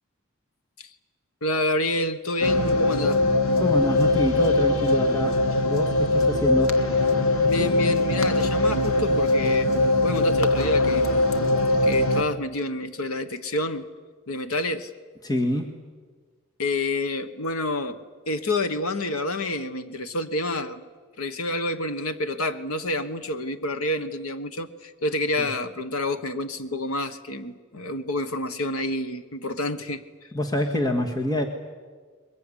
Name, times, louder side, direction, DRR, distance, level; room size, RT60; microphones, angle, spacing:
voice 1, 1.4-3.2 7.4-9.7 10.0-11.3 11.8-13.9 14.3-14.9 16.6-20.8 21.2-30.0, left 2 dB, 90° left, 10 dB, 1.3 m, -28 dB
sound 1, 2.4-12.2, left 2 dB, 70° left, 1.7 m, -21 dB
voice 2, 3.6-5.4 5.7-6.8 15.2-15.9 25.4-25.5 30.3-31.4, left 1 dB, 20° left, 3 dB, 1.8 m, -26 dB
22.5 x 21.5 x 10.0 m, 1.5 s
head